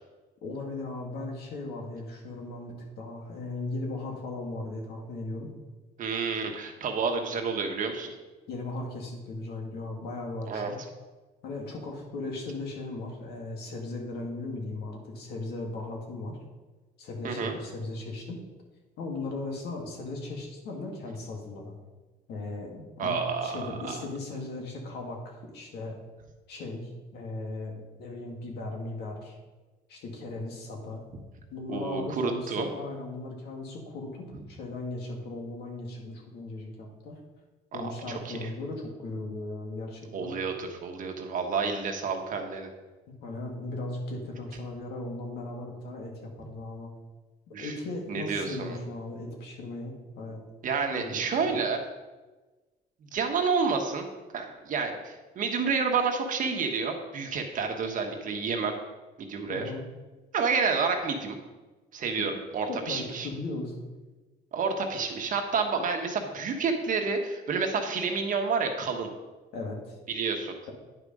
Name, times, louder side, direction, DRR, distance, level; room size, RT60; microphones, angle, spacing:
voice 1, 0.4-5.5 8.5-10.8 11.4-16.3 17.0-18.4 19.0-21.7 22.3-26.0 26.5-27.7 28.0-29.4 29.9-31.0 31.5-37.2 37.7-40.3 43.1-46.9 47.6-50.4 50.9-51.6 59.5-59.8 62.2-62.3 62.6-63.7 69.5-70.0, left 2 dB, 75° left, 0 dB, 2.0 m, -37 dB
voice 2, 6.0-8.1 10.5-10.7 17.2-17.5 23.0-24.0 31.7-32.7 37.8-38.4 40.1-42.7 47.5-47.7 48.1-48.8 50.6-51.8 53.1-54.0 54.3-58.7 59.2-59.7 60.3-61.3 61.9-63.3 64.5-69.1 70.1-70.5, right 5 dB, 50° right, 4 dB, 1.3 m, -29 dB
9.7 x 4.8 x 5.3 m, 1.2 s
cardioid pair, 110°, 17 cm